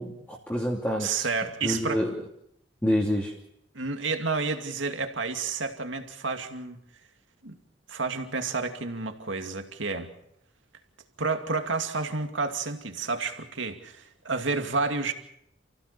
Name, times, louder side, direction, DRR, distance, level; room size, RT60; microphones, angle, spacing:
voice 1, 0.0-1.1 1.6-2.1 2.8-3.3, equal, 10° left, -3 dB, 2.9 m, -27 dB
voice 2, 1.0-2.0 3.7-6.8 7.4-7.5 7.9-10.1 11.2-15.1, right 4 dB, 85° right, 6 dB, 2.5 m, -30 dB
29.5 x 16.0 x 6.9 m, 0.75 s
head